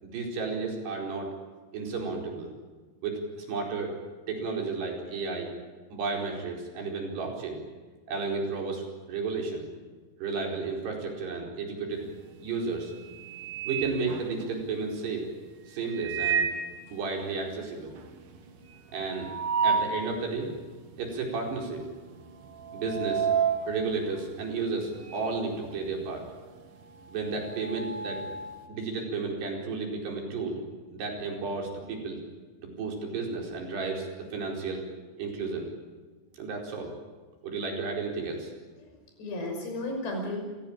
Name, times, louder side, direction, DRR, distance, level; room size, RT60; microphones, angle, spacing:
voice 1, 0.0-1.3 1.7-2.5 3.0-3.9 4.3-5.5 5.9-7.6 8.1-9.7 10.2-12.1 12.4-12.9 13.6-15.3 15.7-16.5 16.9-17.9 18.9-19.3 19.6-20.5 21.0-21.8 22.7-23.3 23.7-26.2 27.1-28.3 28.7-30.6 30.9-32.2 32.6-34.8 35.2-35.7 36.4-36.9 37.4-38.5, right 4 dB, 75° right, 1 dB, 6.7 m, -32 dB
sound 1, 12.0-12.4 12.8-14.8 15.8-16.8 17.2-17.3 17.5-17.6 18.0-20.1 20.6-20.7 21.5-21.8 22.1-25.4 25.6-28.6, right 6 dB, 55° right, 3.2 m, -31 dB
voice 2, 38.8-40.4, left 1 dB, 80° left, 2 dB, 8.1 m, -34 dB
28.5 x 17.0 x 8.9 m, 1.4 s
omnidirectional pair, 4.8 m